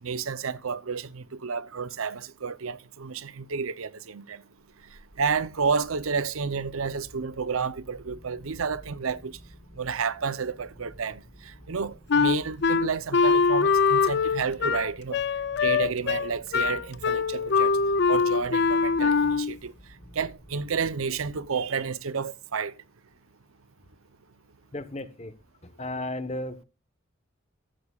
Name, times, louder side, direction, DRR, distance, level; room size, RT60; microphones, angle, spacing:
voice 1, 0.0-4.4 5.2-9.4 9.8-15.2 15.6-17.8 18.1-19.7 20.1-22.8, right 5 dB, 85° right, 0.7 m, -31 dB
sound 1, 4.6-21.9, equal, 5° left, 2.3 m, -51 dB
Wind instrument woodwind instrument, 12.1-19.6, left 5 dB, 55° left, 0.5 m, -23 dB
voice 2, 24.7-25.3 25.6-26.6, left 1 dB, 30° left, 1.2 m, -34 dB
15.0 x 13.5 x 2.4 m
head